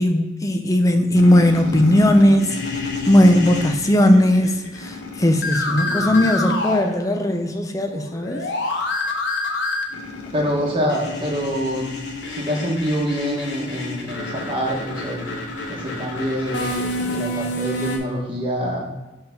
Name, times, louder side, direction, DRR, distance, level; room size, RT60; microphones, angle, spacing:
voice 1, 0.0-8.5, left 1 dB, 20° left, 6 dB, 0.5 m, -17 dB
sound 1, 1.1-7.5 7.7-18.0, left 2 dB, 70° left, 1.0 m, -29 dB
voice 2, 5.7-6.1 10.3-11.9 12.3-15.3 15.7-18.8, equal, 30° right, -3 dB, 1.2 m, -26 dB
5.5 x 3.5 x 5.8 m, 1.1 s
head